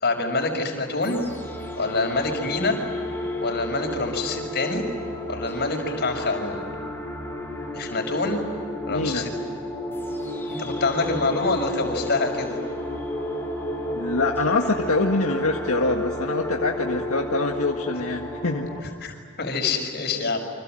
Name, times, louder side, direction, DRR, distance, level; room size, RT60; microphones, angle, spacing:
voice 1, 0.0-1.2 1.8-2.8 3.4-4.8 5.3-6.6 7.7-8.4 8.9-9.3 10.5-12.6 19.0-20.4, left 3 dB, 50° left, 3 dB, 6.0 m, -26 dB
sound 1, 1.0-18.8, left 1 dB, 10° left, 4.9 m, -32 dB
voice 2, 8.9-9.3 13.9-18.7, left 3 dB, 75° left, 1 dB, 1.8 m, -25 dB
29.0 x 26.0 x 7.8 m, 2.2 s
head